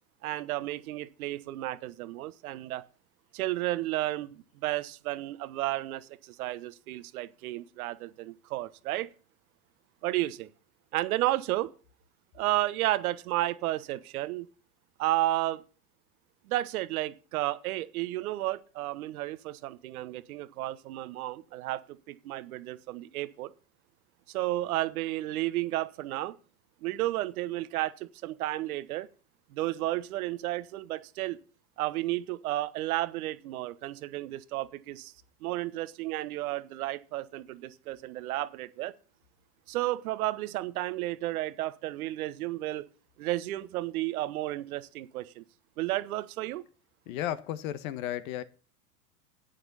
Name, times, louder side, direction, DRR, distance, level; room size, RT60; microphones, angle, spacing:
voice 1, 0.2-2.9 3.3-9.1 10.0-10.5 10.9-11.7 12.3-14.5 15.0-15.6 16.5-23.5 24.3-26.3 26.8-29.1 29.5-31.4 31.8-35.1 35.4-38.9 39.7-42.9 43.2-45.4 45.8-46.6, right 16 dB, 65° right, 1.2 m, -32 dB
voice 2, 47.1-48.4, left 12 dB, 60° left, 1.5 m, -34 dB
11.5 x 8.8 x 4.1 m
hypercardioid pair, 105°, 47 cm